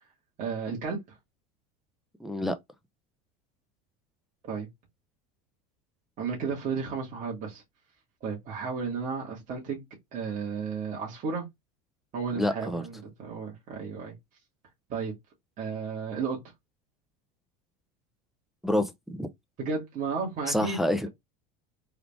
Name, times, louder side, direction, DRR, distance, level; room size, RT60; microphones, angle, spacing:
voice 1, 0.4-1.0 4.5-4.7 6.2-7.6 8.2-9.8 10.1-11.4 12.1-14.1 14.9-15.1 15.6-16.4 19.6-20.8, right 5 dB, 40° right, 1.6 m, -33 dB
voice 2, 2.2-2.6 12.4-12.8 18.6-19.3 20.5-21.1, left 1 dB, ahead, 0.4 m, -28 dB
3.7 x 2.4 x 3.4 m
supercardioid pair, 130°, 21 cm